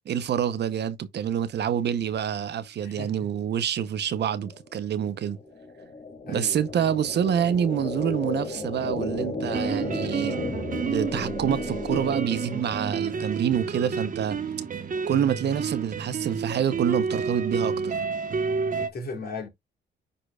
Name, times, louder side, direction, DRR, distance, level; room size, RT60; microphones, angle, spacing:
voice 1, 0.1-5.4 6.3-10.4 10.8-14.4 15.1-18.0, right 9 dB, 60° right, 0.7 m, -27 dB
voice 2, 2.8-3.3 6.3-6.7 18.8-19.5, left 3 dB, 50° left, 3.1 m, -36 dB
sound 1, 4.3-13.2, left 2 dB, 35° left, 2.6 m, -34 dB
sound 2, 9.4-18.9, right 5 dB, 45° right, 1.1 m, -30 dB
10.0 x 4.4 x 2.3 m
cardioid pair, 90°, 20 cm